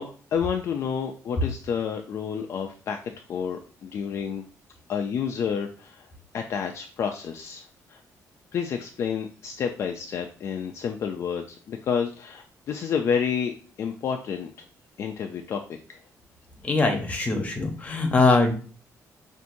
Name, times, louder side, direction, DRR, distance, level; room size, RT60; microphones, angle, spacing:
voice 1, 0.0-4.4 4.9-6.1 6.3-7.6 7.9-8.0 8.5-14.5 15.0-15.6 15.9-16.0, left 7 dB, 50° left, 4 dB, 0.4 m, -29 dB
voice 2, 16.6-18.5, left 3 dB, 25° left, 3 dB, 0.8 m, -22 dB
5.8 x 2.6 x 2.6 m, 0.40 s
cardioid pair, 165°, 6 cm